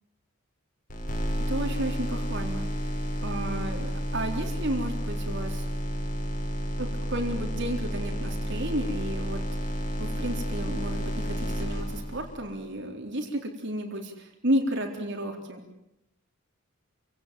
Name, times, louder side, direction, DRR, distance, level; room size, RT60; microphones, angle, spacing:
sound 1, 0.9-12.6, equal, 40° left, 6.2 m, -31 dB
voice 1, 1.4-2.9 3.2-5.7 6.8-9.4 10.0-15.6, right 1 dB, 50° right, 2 dB, 3.9 m, -32 dB
28.0 x 17.5 x 9.3 m, 0.85 s
head